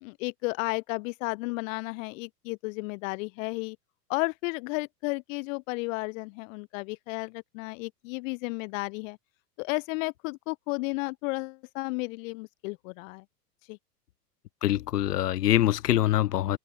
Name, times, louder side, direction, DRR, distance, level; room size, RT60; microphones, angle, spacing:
voice 1, 0.0-3.8 4.1-9.2 9.6-13.2 13.7-13.8, left 27 dB, 55° left, 1.8 m, -33 dB
voice 2, 14.6-16.6, left 13 dB, 75° left, 1.6 m, -24 dB
hypercardioid pair, 110°, 48 cm